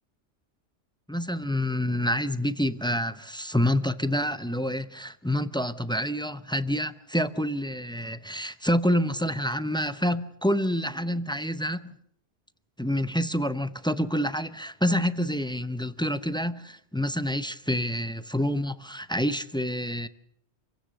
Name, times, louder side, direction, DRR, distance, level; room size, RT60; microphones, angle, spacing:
voice 1, 1.1-11.9 12.8-20.1, equal, 5° left, 0.5 m, -27 dB
28.0 x 16.5 x 6.5 m
omnidirectional pair, 1.2 m